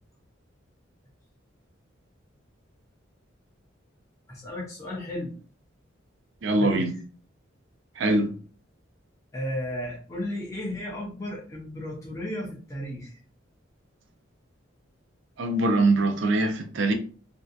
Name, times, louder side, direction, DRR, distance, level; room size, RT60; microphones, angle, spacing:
voice 1, 4.3-5.3 6.6-6.9 9.3-13.2, left 1 dB, 15° left, 0.6 m, -34 dB
voice 2, 6.4-6.9 8.0-8.3 15.4-16.9, right 2 dB, 70° right, 0.5 m, -23 dB
2.6 x 2.2 x 2.4 m
head